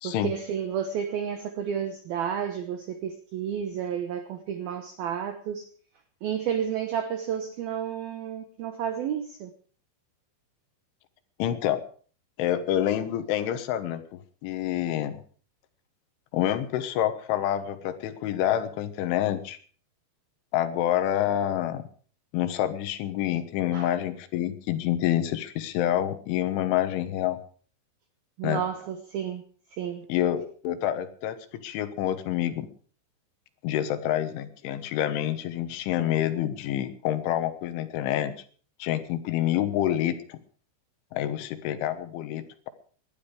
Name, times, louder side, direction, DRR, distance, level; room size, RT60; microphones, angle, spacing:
voice 1, 0.0-5.7 6.2-9.5 23.7-23.9 28.4-29.4 29.7-30.1, right 8 dB, 75° right, 2.2 m, -31 dB
voice 2, 11.4-11.8 12.4-15.2 16.3-19.6 20.5-21.8 22.3-27.4 28.4-28.6 30.1-32.7 33.6-38.3 38.8-40.4 41.1-42.7, left 12 dB, 75° left, 3.5 m, -27 dB
19.0 x 12.5 x 4.9 m
omnidirectional pair, 5.8 m